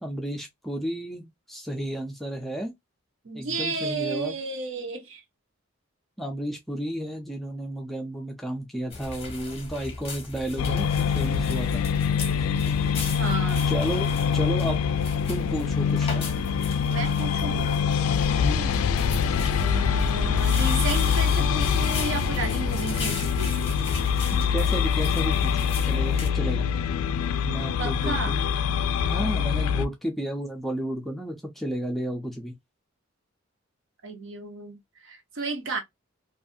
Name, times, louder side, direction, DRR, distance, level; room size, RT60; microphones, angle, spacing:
voice 1, 0.0-2.7 3.3-4.3 6.2-11.8 12.4-12.5 13.7-14.8 15.3-16.3 18.4-18.8 24.3-26.7 27.4-28.4 29.1-32.5, equal, ahead, 0.4 m, -32 dB
voice 2, 3.2-5.2 13.1-13.7 16.9-17.7 19.5-23.8 27.8-28.4 34.0-35.8, right 3 dB, 60° right, 0.7 m, -33 dB
sound 1, 8.9-26.3, left 3 dB, 25° left, 0.7 m, -37 dB
sound 2, 10.6-29.9, left 7 dB, 80° left, 0.3 m, -24 dB
2.6 x 2.4 x 2.5 m
head